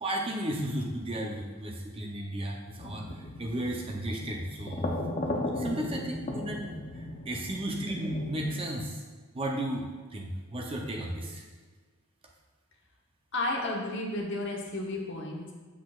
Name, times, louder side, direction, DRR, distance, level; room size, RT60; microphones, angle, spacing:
voice 1, 0.0-5.0 5.6-6.8 7.3-9.0 9.3-11.4, right 1 dB, 25° right, 0 dB, 0.6 m, -34 dB
sound 1, 2.8-8.6, left 1 dB, 30° left, 0.6 m, -36 dB
voice 2, 13.3-15.5, left 2 dB, 55° left, -1 dB, 1.1 m, -32 dB
8.3 x 6.1 x 2.4 m, 1.4 s
head